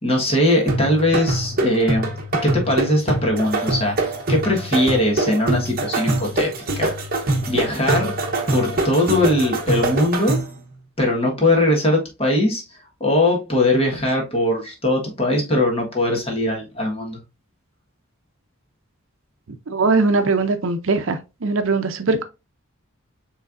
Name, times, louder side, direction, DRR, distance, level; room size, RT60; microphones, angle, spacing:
voice 1, 0.0-2.1 2.4-6.9 7.5-10.4 11.0-12.6 13.0-17.2, left 1 dB, 25° left, 1.3 m, -20 dB
sound 1, 0.7-10.6, right 2 dB, 40° right, 0.9 m, -24 dB
voice 2, 19.7-22.2, right 3 dB, 65° right, 0.6 m, -20 dB
6.5 x 3.2 x 2.5 m
head